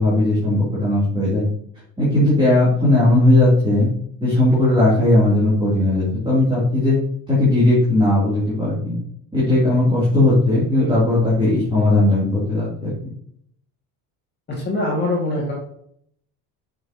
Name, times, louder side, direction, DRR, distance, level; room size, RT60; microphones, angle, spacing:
voice 1, 0.0-1.5 2.0-3.9 4.2-7.0 7.3-9.0 9.3-12.9, left 1 dB, 10° right, -9 dB, 3.4 m, -17 dB
voice 2, 14.5-15.5, left 1 dB, 25° left, -5 dB, 2.4 m, -23 dB
8.3 x 6.9 x 3.1 m, 0.68 s
cardioid pair, 140°, 41 cm